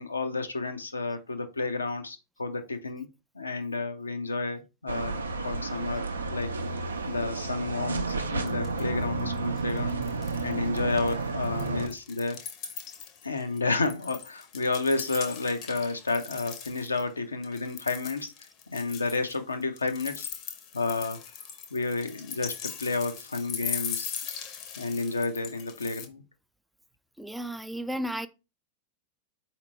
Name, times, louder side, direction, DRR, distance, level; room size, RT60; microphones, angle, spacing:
voice 1, 0.0-3.1 3.4-6.5 7.1-10.0 10.4-12.4 13.2-18.3 18.7-20.3 20.7-21.2 21.7-24.1 24.8-26.2, left 3 dB, 80° left, 0.6 m, -31 dB
sound 1, 4.9-11.9, right 3 dB, 75° right, 0.5 m, -31 dB
sound 2, 8.1-8.2 8.5-9.0 9.3-10.5 10.8-17.0 17.4-26.1, left 8 dB, 40° left, 0.7 m, -40 dB
voice 2, 27.2-28.3, equal, ahead, 0.3 m, -33 dB
4.3 x 2.9 x 4.0 m
figure-of-eight pair, 90°, 0 cm